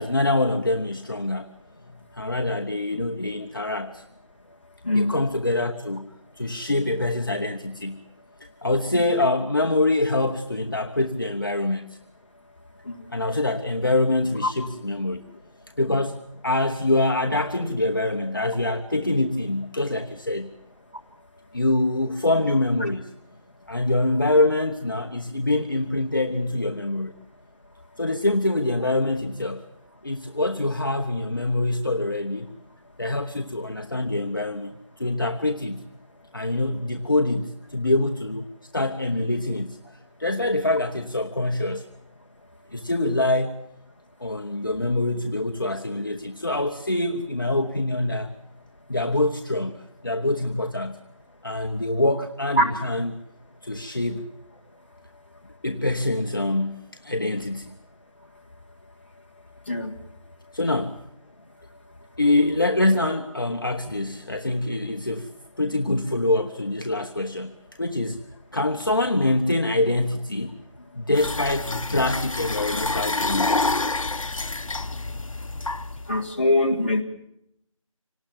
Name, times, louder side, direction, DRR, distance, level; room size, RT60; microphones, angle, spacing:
voice 1, 0.0-1.5 2.1-4.0 4.9-6.0 6.4-8.0 8.6-12.0 13.1-15.2 15.8-20.5 21.5-23.1 23.7-27.1 28.0-29.6 30.0-32.5 33.0-35.8 36.3-38.4 38.7-39.8 40.2-41.9 42.7-43.7 44.2-48.4 48.9-51.0 51.4-53.2 53.6-54.2 55.6-57.8 60.5-61.0 62.2-65.3 65.6-67.5 67.8-68.2 68.5-70.6 70.9-73.6, left 2 dB, 40° left, 3 dB, 1.0 m, -25 dB
sound 1, 71.1-76.2, left 3 dB, 70° left, 0.8 m, -27 dB
voice 2, 76.1-77.0, left 1 dB, 20° left, -2 dB, 1.7 m, -22 dB
26.0 x 18.5 x 7.3 m, 0.75 s
figure-of-eight pair, 180°, 18 cm